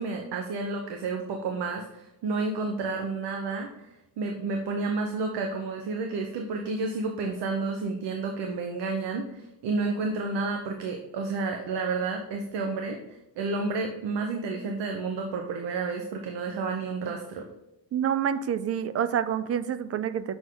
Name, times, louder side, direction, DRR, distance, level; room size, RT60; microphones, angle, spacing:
voice 1, 0.0-3.9 4.2-17.5, right 3 dB, 90° right, 3 dB, 1.0 m, -31 dB
voice 2, 17.9-20.3, right 9 dB, 40° right, 14 dB, 0.4 m, -27 dB
7.1 x 6.1 x 3.8 m, 0.90 s
cardioid pair, 135°, 40 cm